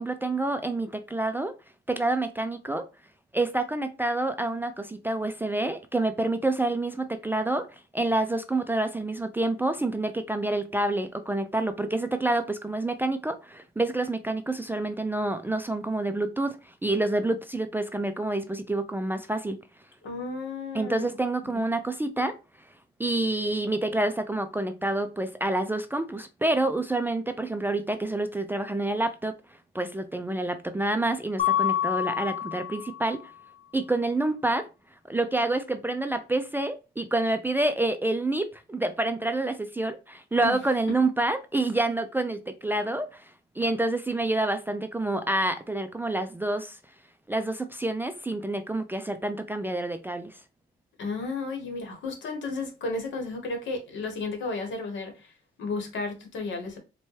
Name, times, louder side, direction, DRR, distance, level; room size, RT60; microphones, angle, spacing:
voice 1, 0.0-1.5 1.9-2.8 3.3-7.7 7.9-16.6 16.8-19.6 20.7-22.4 23.0-29.3 29.7-33.2 33.7-34.7 35.1-43.3 43.6-46.8 47.3-50.4, right 2 dB, 10° right, 0.3 m, -28 dB
voice 2, 20.0-21.1 21.5-21.6 40.4-40.6 51.0-55.3 55.6-56.8, left 3 dB, 70° left, 1.2 m, -33 dB
Mallet percussion, 31.4-33.2, left 11 dB, 35° left, 0.8 m, -27 dB
4.2 x 2.2 x 3.1 m
cardioid pair, 90°, 20 cm